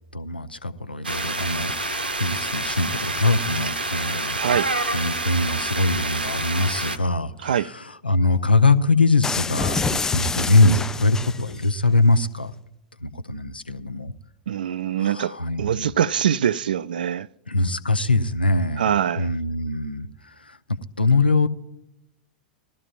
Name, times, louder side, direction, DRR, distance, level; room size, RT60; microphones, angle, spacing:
voice 1, 0.1-4.6 4.9-12.5 13.0-14.1 15.0-15.9 17.5-18.9 19.2-20.1 20.4-20.6 21.0-21.5, left 3 dB, 85° left, 0.6 m, -22 dB
sound 1, 1.0-7.0, right 2 dB, 85° right, 0.9 m, -27 dB
voice 2, 4.3-4.7 7.4-7.7 14.5-17.3 18.8-19.3, right 9 dB, 65° right, 0.3 m, -23 dB
sound 2, 9.2-11.7, left 4 dB, 10° left, 0.3 m, -27 dB
19.0 x 13.5 x 2.5 m
figure-of-eight pair, 95°, 5 cm